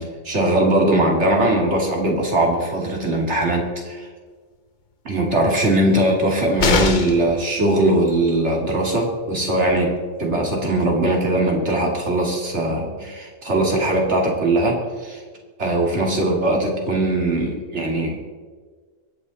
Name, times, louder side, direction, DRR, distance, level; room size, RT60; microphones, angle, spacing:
voice 1, 0.0-4.1 5.0-9.9 10.2-15.2 15.6-18.3, right 1 dB, 55° right, 0 dB, 2.9 m, -20 dB
sound 1, 6.6-7.3 9.3-9.4 9.7-9.8, left 4 dB, 40° left, 0.9 m, -20 dB
23.0 x 8.8 x 4.2 m, 1.5 s
omnidirectional pair, 1.4 m